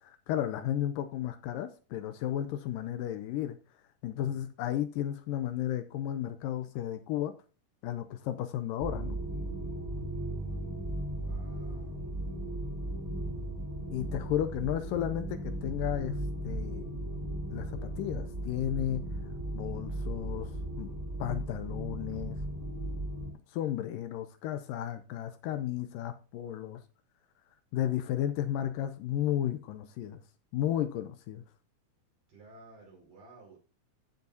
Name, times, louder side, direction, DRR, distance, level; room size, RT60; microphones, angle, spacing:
voice 1, 0.0-3.6 4.0-7.3 7.8-9.2 13.9-16.2 16.4-17.0 17.5-19.1 19.5-22.4 23.5-26.8 27.7-30.2 30.5-31.4, left 11 dB, 80° left, 10 dB, 2.2 m, -33 dB
sound 1, 8.8-23.3, right 1 dB, 15° right, 2.7 m, -36 dB
voice 2, 11.1-12.2 32.3-33.6, right 2 dB, 65° right, -2 dB, 6.0 m, -55 dB
14.0 x 7.4 x 2.7 m, 0.33 s
omnidirectional pair, 4.2 m